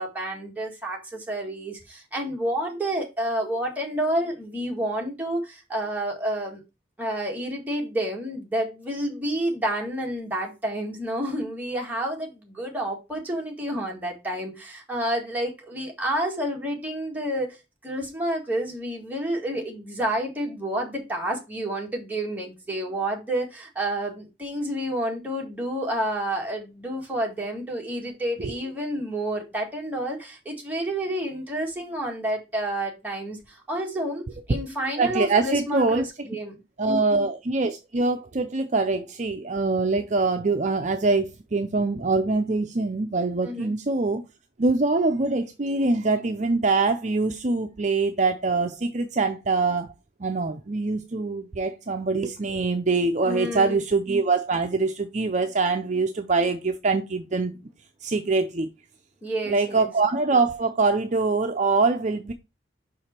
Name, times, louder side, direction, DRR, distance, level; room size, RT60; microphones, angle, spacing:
voice 1, 0.0-6.6 7.0-17.6 17.8-36.6 43.4-43.7 53.2-53.8 59.2-59.9, right 1 dB, 10° right, 1.8 m, -29 dB
voice 2, 35.0-36.0 36.8-44.2 44.6-49.9 50.2-57.5 58.0-58.7 59.5-62.3, right 3 dB, 40° right, 0.6 m, -24 dB
5.8 x 4.9 x 4.4 m
head